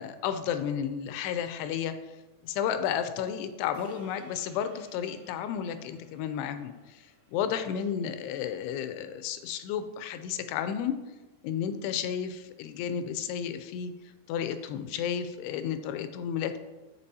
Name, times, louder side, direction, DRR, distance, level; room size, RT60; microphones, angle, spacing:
voice 1, 0.0-1.9 2.4-7.0 7.3-11.0 11.4-13.9 14.3-16.6, left 8 dB, 85° left, 9 dB, 2.6 m, -32 dB
sound 1, 3.7-8.2, right 2 dB, 80° right, 1.5 m, -55 dB
14.0 x 4.8 x 2.7 m, 1.1 s
omnidirectional pair, 4.8 m